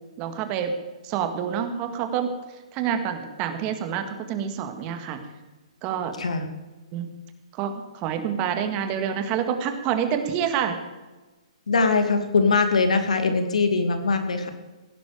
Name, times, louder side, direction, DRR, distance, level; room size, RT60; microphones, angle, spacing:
voice 1, 0.2-0.7 1.0-2.3 2.7-5.2 5.8-6.1 6.9-7.1 7.5-10.8, right 8 dB, 30° right, 7 dB, 1.9 m, -27 dB
voice 2, 11.7-14.5, left 4 dB, 85° left, 7 dB, 2.4 m, -22 dB
17.0 x 10.5 x 5.1 m, 1.2 s
hypercardioid pair, 140°, 3 cm